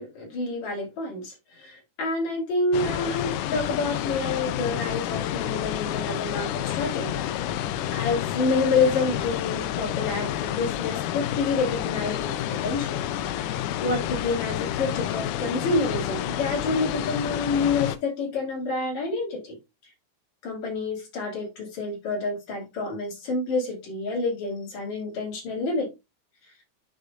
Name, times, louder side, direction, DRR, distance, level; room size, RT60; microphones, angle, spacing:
voice 1, 0.0-7.2 7.5-7.6 7.9-13.0 13.3-19.6 20.4-25.9, left 3 dB, 65° left, -3 dB, 4.0 m, -28 dB
sound 1, 2.7-18.0, left 11 dB, 90° left, 2.1 m, -29 dB
11.0 x 3.8 x 2.5 m, 0.23 s
omnidirectional pair, 3.5 m